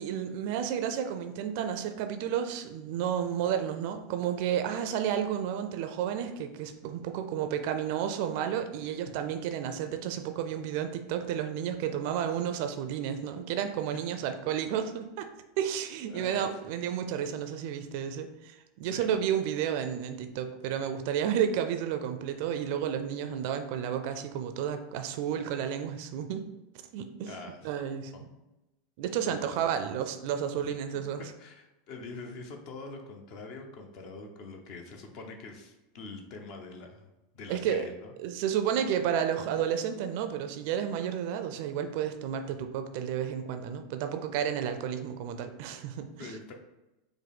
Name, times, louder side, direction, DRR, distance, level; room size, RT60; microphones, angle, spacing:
voice 1, 0.0-15.3 15.6-26.5 26.9-27.4 27.6-28.3 29.0-31.2 37.5-37.8 38.2-46.3, right 9 dB, 55° right, 7 dB, 0.4 m, -31 dB
voice 2, 16.1-16.7 18.8-19.1 27.2-27.7 28.1-28.2 29.3-29.5 31.4-37.1 37.3-38.1 46.2-46.5, left 3 dB, 50° left, 4 dB, 0.6 m, -44 dB
4.9 x 2.1 x 3.5 m, 0.98 s
figure-of-eight pair, 85°, 0 cm